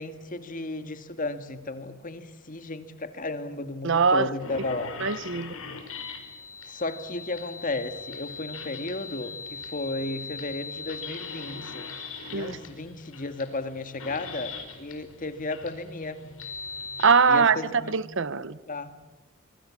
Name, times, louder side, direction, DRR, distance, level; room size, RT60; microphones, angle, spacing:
voice 1, 0.0-5.1 6.7-11.9 12.3-16.3 17.3-18.0 18.7-18.9, left 2 dB, 40° left, 2.0 m, -34 dB
voice 2, 3.8-4.3 5.0-5.5 12.3-12.5 17.0-17.6 17.9-18.6, right 5 dB, 65° right, 0.9 m, -22 dB
sound 1, 4.4-17.2, left 4 dB, 80° left, 4.6 m, -40 dB
25.5 x 23.5 x 8.5 m
head